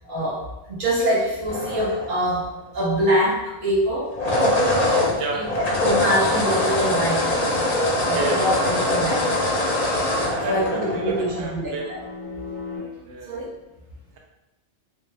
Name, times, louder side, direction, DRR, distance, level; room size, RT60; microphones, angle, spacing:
voice 1, 0.0-4.1 5.3-5.5 5.8-7.3 8.1-9.5 10.4-12.0 12.8-13.0 13.2-13.5, equal, 45° right, -7 dB, 1.1 m, -24 dB
sound 1, 1.5-2.5 4.0-11.5, left 1 dB, 50° left, 0.5 m, -23 dB
voice 2, 5.1-5.5 8.1-8.7 10.2-11.8 12.7-13.4, right 4 dB, 70° right, 1 dB, 0.8 m, -31 dB
sound 2, 7.7-12.8, left 4 dB, 30° right, 0.4 m, -39 dB
2.7 x 2.2 x 3.2 m, 0.98 s
omnidirectional pair, 1.3 m